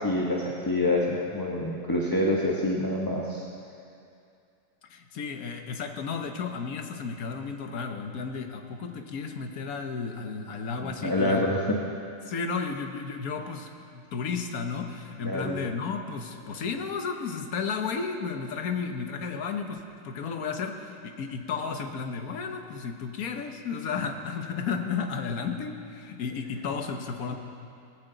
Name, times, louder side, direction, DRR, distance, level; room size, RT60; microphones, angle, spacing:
voice 1, 0.0-3.4 10.8-11.6 15.2-15.6, left 1 dB, 15° left, -3 dB, 1.0 m, -27 dB
voice 2, 4.8-11.4 12.2-27.3, left 5 dB, 65° left, 5 dB, 1.4 m, -33 dB
18.0 x 14.5 x 4.0 m, 2.5 s
omnidirectional pair, 1.7 m